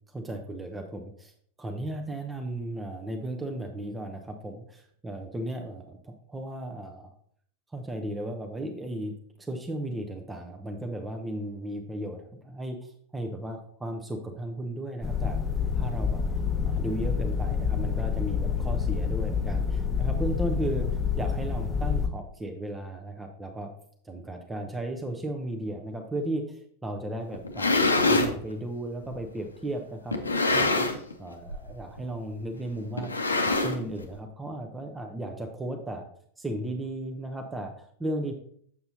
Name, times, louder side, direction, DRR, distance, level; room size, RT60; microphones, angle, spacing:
voice 1, 0.1-1.3 1.6-7.1 7.7-15.4 15.8-16.2 16.6-20.9 21.2-23.7 24.0-30.2 30.5-30.9 31.2-33.1 33.5-36.1 36.4-38.3, right 1 dB, 10° right, 3 dB, 0.7 m, -35 dB
sound 1, 15.0-22.1, left 6 dB, 10° left, 1.0 m, -28 dB
sound 2, 27.3-28.3 29.1-29.2 30.1-31.1 31.4-31.7 32.0-32.1 33.0-34.0, left 2 dB, 80° left, 0.7 m, -24 dB
6.9 x 6.6 x 2.7 m, 0.62 s
figure-of-eight pair, 90°, 0 cm